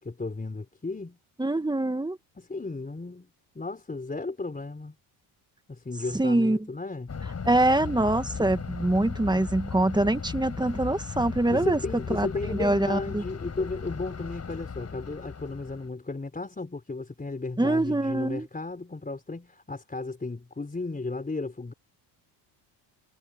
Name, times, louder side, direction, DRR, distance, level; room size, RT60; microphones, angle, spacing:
voice 1, 0.0-1.2 2.3-3.3 3.5-4.9 5.7-7.1 11.5-21.7, left 3 dB, 20° left, 4.6 m, -34 dB
voice 2, 1.4-2.2 6.1-6.6 7.4-11.8 12.1-12.3 12.6-13.2 17.6-18.5, right 2 dB, 10° right, 1.7 m, -24 dB
Thunder, 7.1-15.9, left 5 dB, 35° left, 5.3 m, -37 dB
supercardioid pair, 85°, 47 cm